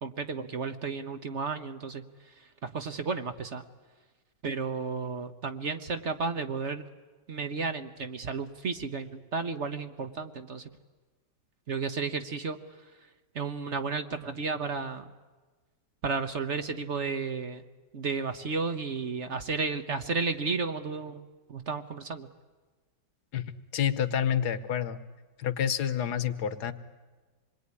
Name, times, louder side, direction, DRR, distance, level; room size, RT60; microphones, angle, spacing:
voice 1, 0.0-2.0 2.6-3.6 4.4-6.8 7.3-10.7 11.7-12.6 13.3-15.1 16.0-17.6 17.9-22.3, right 4 dB, 45° right, 9 dB, 1.2 m, -33 dB
voice 2, 23.7-25.0 25.4-26.7, left 9 dB, 60° left, 12 dB, 1.6 m, -28 dB
26.5 x 21.5 x 9.8 m, 1.3 s
omnidirectional pair, 2.0 m